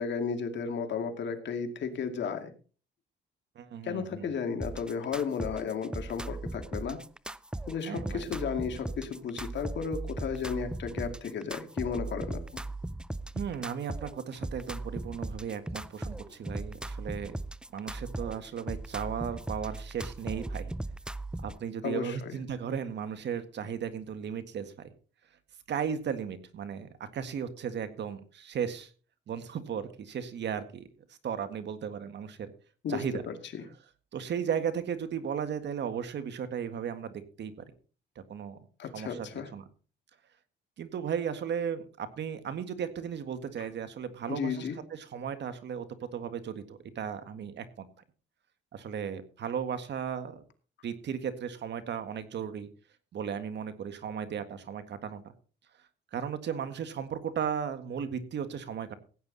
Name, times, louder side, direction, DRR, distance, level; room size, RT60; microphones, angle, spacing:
voice 1, 0.0-2.5 3.8-7.0 7.7-12.6 21.8-22.3 32.8-33.6 38.8-39.5 43.6-43.7 44.3-44.8, left 6 dB, 65° left, 6 dB, 2.3 m, -34 dB
voice 2, 3.6-4.3 7.8-8.4 13.3-17.4 17.7-20.7 21.4-24.9 25.7-28.9 29.3-30.9 31.2-32.5 32.9-33.2 34.1-37.5 38.2-38.6 38.9-39.7 40.8-47.9 48.7-50.4 50.8-52.7 53.1-55.3 56.1-58.9, right 7 dB, 60° right, 10 dB, 1.8 m, -35 dB
sound 1, 4.6-21.6, right 2 dB, 5° right, 0.5 m, -38 dB
16.0 x 9.3 x 4.1 m, 0.38 s
cardioid pair, 90°, 20 cm